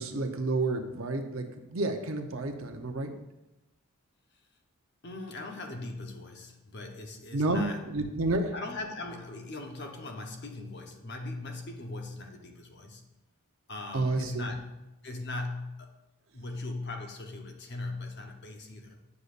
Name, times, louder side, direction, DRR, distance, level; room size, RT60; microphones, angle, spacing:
voice 1, 0.0-3.1 7.3-8.5 13.9-14.5, right 2 dB, 65° right, 4 dB, 0.8 m, -30 dB
voice 2, 5.0-7.9 8.5-13.0 13.7-14.6 15.0-15.9 16.3-19.0, left 2 dB, 50° left, 3 dB, 0.9 m, -39 dB
9.5 x 6.5 x 2.5 m, 0.97 s
head